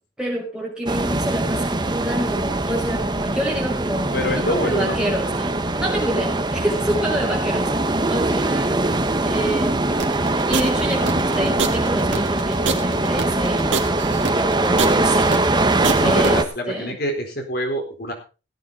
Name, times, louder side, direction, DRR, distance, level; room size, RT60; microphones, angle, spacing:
voice 1, 0.2-7.7 8.1-8.7 9.3-10.0 10.5-15.6 16.0-16.4 16.7-17.0, right 1 dB, 5° right, -2 dB, 5.4 m, -27 dB
sound 1, 0.9-16.4, right 2 dB, 25° right, 1.2 m, -22 dB
voice 2, 4.1-5.0 16.0-18.1, equal, 55° left, 4 dB, 4.3 m, -26 dB
sound 2, 10.0-16.3, right 5 dB, 75° right, 2.4 m, -26 dB
17.5 x 9.5 x 4.1 m, 0.33 s
head